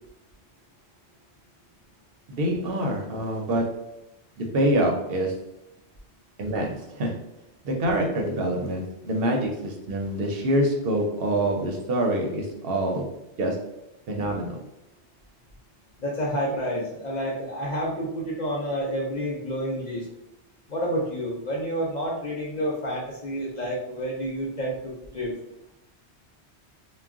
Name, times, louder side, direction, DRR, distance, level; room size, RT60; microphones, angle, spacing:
voice 1, 2.3-3.8 4.4-5.4 6.4-7.2 7.6-13.1 13.4-13.7 14.1-14.6, right 1 dB, 65° right, 1 dB, 0.7 m, -26 dB
voice 2, 16.0-20.1 20.7-25.3, equal, 50° left, -4 dB, 0.6 m, -29 dB
2.3 x 2.1 x 3.5 m, 0.86 s
omnidirectional pair, 1.1 m